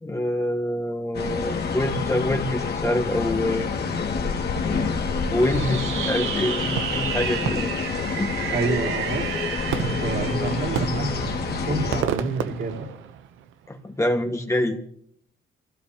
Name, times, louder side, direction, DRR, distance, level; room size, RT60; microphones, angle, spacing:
voice 1, 0.0-3.7 5.3-7.7 8.2-8.3 13.7-14.8, left 1 dB, 15° left, 3 dB, 1.6 m, -25 dB
sound 1, 1.1-12.0, left 5 dB, 55° left, 2.2 m, -28 dB
Fireworks, 5.4-13.5, right 10 dB, 85° right, 0.8 m, -30 dB
voice 2, 8.5-9.3 9.7-12.9, right 3 dB, 60° right, -1 dB, 4.3 m, -28 dB
25.0 x 16.5 x 2.9 m, 0.65 s
cardioid pair, 90°, 20 cm